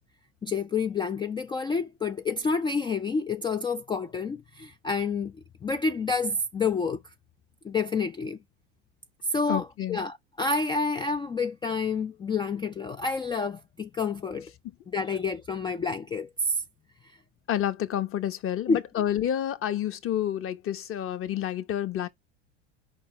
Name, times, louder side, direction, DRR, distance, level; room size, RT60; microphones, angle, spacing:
voice 1, 0.4-7.0 7.6-8.4 9.3-14.5 14.9-16.6 18.7-18.8, left 4 dB, 15° left, 0.3 m, -29 dB
voice 2, 9.5-10.0 17.5-22.1, left 11 dB, 35° left, 1.2 m, -29 dB
5.0 x 4.2 x 4.4 m
hypercardioid pair, 95°, 36 cm